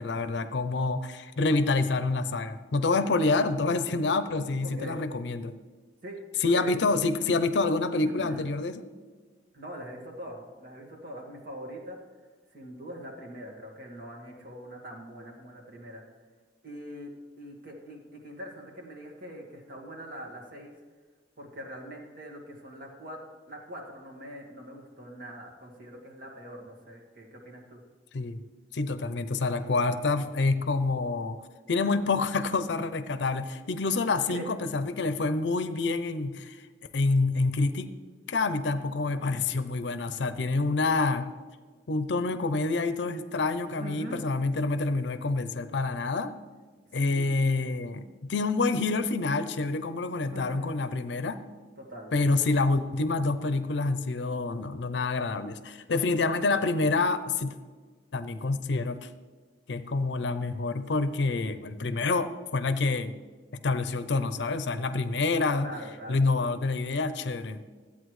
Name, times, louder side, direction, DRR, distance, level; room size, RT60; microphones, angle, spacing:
voice 1, 0.0-5.5 6.4-8.8 28.1-28.4 28.7-31.4 31.7-36.6 36.9-37.9 38.3-41.3 41.9-46.3 46.9-51.4 52.1-57.5 58.1-59.1 59.7-63.1 63.6-65.7 66.1-67.6, left 3 dB, 70° left, 11 dB, 0.6 m, -27 dB
voice 2, 4.6-5.0 6.0-6.7 8.0-8.5 9.5-12.0 12.5-16.0 16.6-17.1 17.4-20.8 21.4-23.2 23.5-27.8 34.3-34.5 43.8-44.2 47.1-47.5 50.3-50.7 51.8-52.1 65.6-66.2, right 1 dB, 55° right, -1 dB, 1.9 m, -43 dB
13.5 x 8.4 x 3.2 m, 1.4 s
head